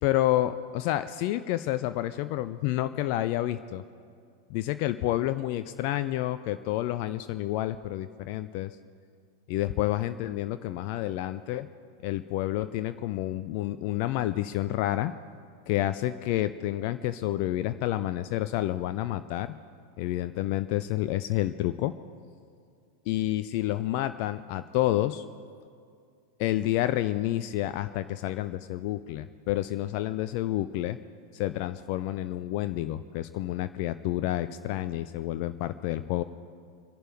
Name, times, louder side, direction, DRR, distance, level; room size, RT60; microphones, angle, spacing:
voice 1, 0.0-3.8 4.5-8.8 9.5-11.7 12.0-15.1 15.7-19.5 20.0-21.9 23.1-25.2 26.4-31.0 31.3-36.2, left 14 dB, 45° left, 11 dB, 0.4 m, -29 dB
25.5 x 11.0 x 4.5 m, 2.2 s
figure-of-eight pair, 90°, 0 cm